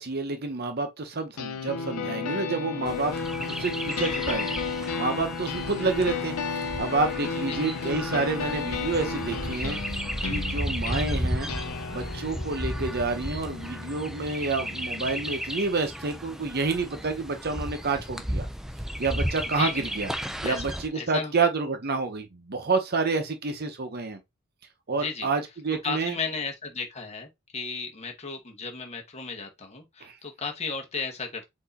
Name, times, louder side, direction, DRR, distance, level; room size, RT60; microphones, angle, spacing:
voice 1, 0.0-3.1 3.6-6.3 6.8-9.8 10.2-11.5 11.9-18.5 19.0-20.1 20.4-24.2 24.9-26.1 30.0-30.1, right 3 dB, 45° right, 0.7 m, -29 dB
sound 1, 1.4-15.4, left 5 dB, 85° left, 0.7 m, -33 dB
Chirp tweet, 2.9-20.9, equal, ahead, 0.4 m, -34 dB
voice 2, 20.9-21.3 24.9-25.3 25.8-27.3 27.5-31.5, left 4 dB, 30° left, 1.1 m, -34 dB
4.5 x 2.7 x 4.0 m
head